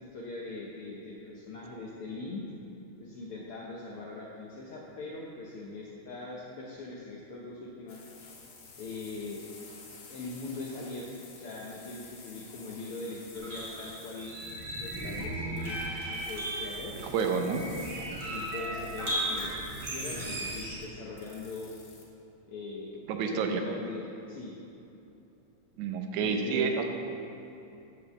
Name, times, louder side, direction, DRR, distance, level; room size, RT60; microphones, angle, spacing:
voice 1, 0.0-2.4 3.0-8.0 8.8-9.5 10.1-14.3 14.7-17.4 18.2-21.7 22.5-24.5 26.1-26.7, left 3 dB, 85° left, -4 dB, 1.2 m, -41 dB
sound 1, 7.9-22.1, left 4 dB, 65° left, 2.8 m, -51 dB
sound 2, 13.3-20.8, right 1 dB, 35° right, 1.0 m, -36 dB
voice 2, 17.0-17.6 23.1-23.6 25.8-26.8, right 5 dB, 75° right, 4 dB, 2.0 m, -29 dB
10.5 x 4.9 x 6.7 m, 2.8 s
omnidirectional pair, 3.7 m